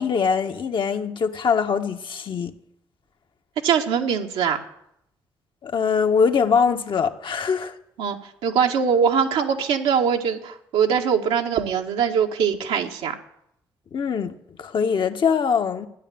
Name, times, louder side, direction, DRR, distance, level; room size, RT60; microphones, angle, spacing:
voice 1, 0.0-2.5 5.6-7.7 13.9-15.9, left 6 dB, 55° left, 1.4 m, -22 dB
voice 2, 3.6-4.6 8.0-13.1, right 7 dB, 75° right, 1.6 m, -22 dB
15.0 x 10.0 x 7.7 m
hypercardioid pair, 45°, 10 cm